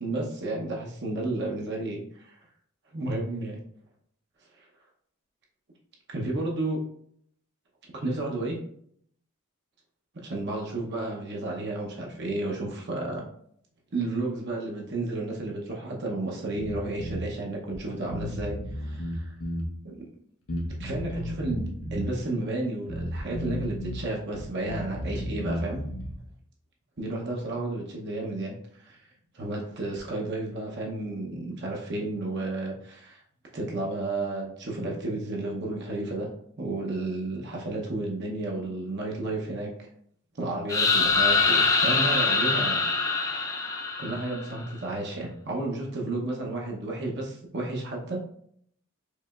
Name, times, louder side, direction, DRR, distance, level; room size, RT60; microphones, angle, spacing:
voice 1, 0.0-2.4 2.9-3.6 4.6-4.7 6.1-6.8 7.9-8.6 10.1-13.2 13.9-19.3 19.8-20.0 20.8-25.8 27.0-29.0 29.3-33.2 33.5-36.3 36.6-39.7 40.4-42.9 44.0-48.2, right 2 dB, 55° right, -1 dB, 0.8 m, -32 dB
Bass guitar, 16.6-17.2 17.7-17.8 18.1-19.7 20.5-22.1 22.9-24.0 24.3-26.2, equal, 90° left, 1.0 m, -33 dB
sound 1, 40.7-44.5, left 4 dB, 15° left, 0.4 m, -24 dB
4.8 x 3.2 x 2.4 m, 0.66 s
head